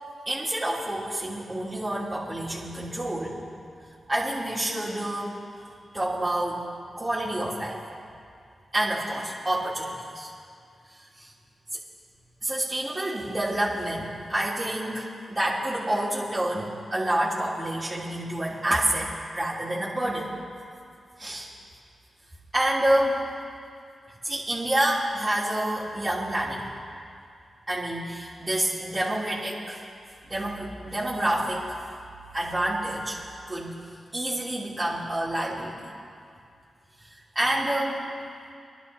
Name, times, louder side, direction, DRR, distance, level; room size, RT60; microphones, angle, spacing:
voice 1, 0.2-3.4 4.1-5.3 5.9-6.6 7.0-7.8 8.7-10.3 11.2-11.3 12.4-20.3 21.2-21.5 22.5-23.2 24.2-26.7 27.7-29.8 30.2-31.8 32.3-33.2 33.5-33.7 34.1-35.7 37.0-37.1 37.3-38.0, right 1 dB, 30° right, -10 dB, 3.1 m, -28 dB
29.0 x 11.5 x 2.8 m, 2.4 s
supercardioid pair, 40°, 0 cm